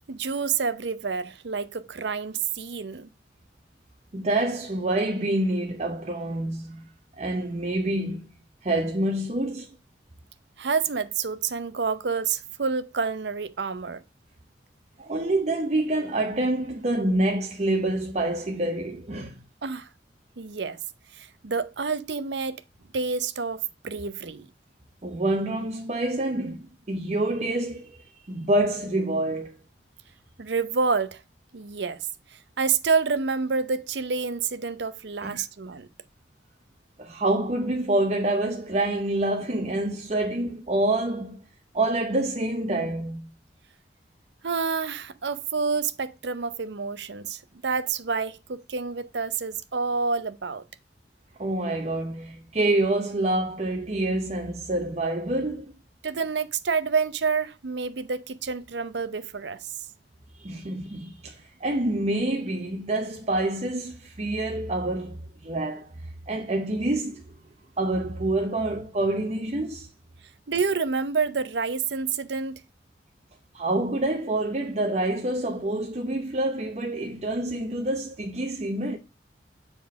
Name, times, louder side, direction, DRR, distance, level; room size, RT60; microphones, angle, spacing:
voice 1, 0.1-3.1 10.6-14.0 19.6-19.9 20.4-20.8 21.1-22.6 22.9-24.5 30.4-31.2 31.5-32.1 32.6-35.9 44.4-50.6 56.0-59.7 70.5-72.6, right 5 dB, 75° right, 0.7 m, -28 dB
voice 2, 4.1-6.9 7.2-8.3 8.6-9.7 15.0-19.4 25.0-28.0 28.3-29.6 35.2-35.4 37.0-41.4 41.7-43.3 51.4-55.7 60.4-66.0 66.3-67.3 67.8-69.9 73.5-79.0, right 1 dB, 40° right, 0.8 m, -27 dB
7.3 x 3.9 x 4.6 m
head